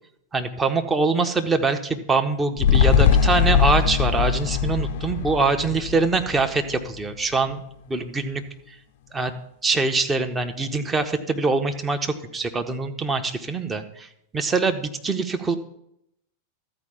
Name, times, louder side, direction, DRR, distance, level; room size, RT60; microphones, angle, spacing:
voice 1, 0.3-7.6 7.9-8.4 9.1-9.3 9.6-14.1 14.3-15.5, right 3 dB, 15° right, 7 dB, 0.9 m, -24 dB
sound 1, 2.6-7.1 7.4-7.5, left 7 dB, 50° left, 0.5 m, -21 dB
13.0 x 4.7 x 6.9 m, 0.76 s
figure-of-eight pair, 90°, 0 cm